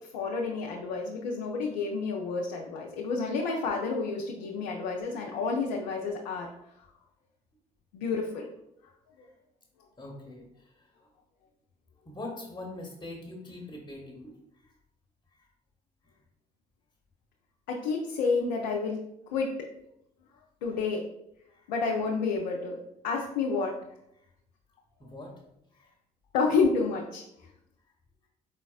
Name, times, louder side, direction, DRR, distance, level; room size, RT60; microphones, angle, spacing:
voice 1, 0.1-6.5 7.9-8.5 17.7-19.0 19.3-19.5 20.6-21.0 21.7-22.8 23.0-23.8 26.3-27.2, left 4 dB, 80° left, -1 dB, 0.6 m, -29 dB
voice 2, 10.0-11.1 12.0-14.7 15.3-15.5 21.5-21.7 24.2-24.3 25.0-25.4 25.7-25.9, left 2 dB, 20° left, 0 dB, 1.1 m, -43 dB
4.9 x 4.0 x 2.3 m, 0.80 s
hypercardioid pair, 50°, 21 cm